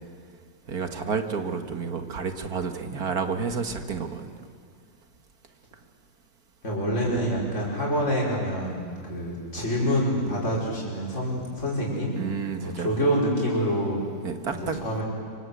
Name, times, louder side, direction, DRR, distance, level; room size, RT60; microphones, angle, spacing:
voice 1, 0.7-4.3 12.2-12.9 14.2-14.8, right 5 dB, 70° right, 6 dB, 2.1 m, -30 dB
voice 2, 6.6-12.1 12.6-14.0 14.5-15.0, equal, 50° left, -4 dB, 5.6 m, -26 dB
25.5 x 25.5 x 8.2 m, 2.1 s
omnidirectional pair, 1.6 m